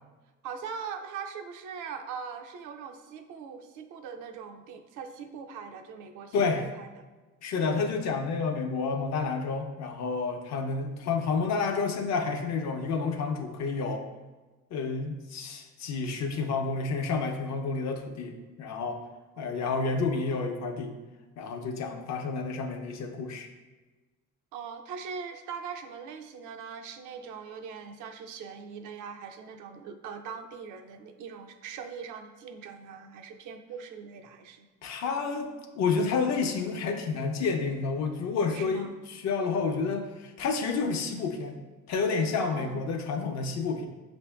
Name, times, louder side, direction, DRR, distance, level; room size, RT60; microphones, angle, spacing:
voice 1, 0.4-7.0 19.4-19.7 24.5-34.7 38.5-38.9 42.4-42.8, right 6 dB, 75° right, 6 dB, 0.5 m, -41 dB
voice 2, 6.3-6.7 7.4-14.0 14.7-19.0 19.4-21.0 21.4-23.5 34.8-41.6 41.9-43.9, left 4 dB, 60° left, 4 dB, 0.6 m, -30 dB
6.1 x 2.6 x 2.2 m, 1.2 s
cardioid pair, 115°, 31 cm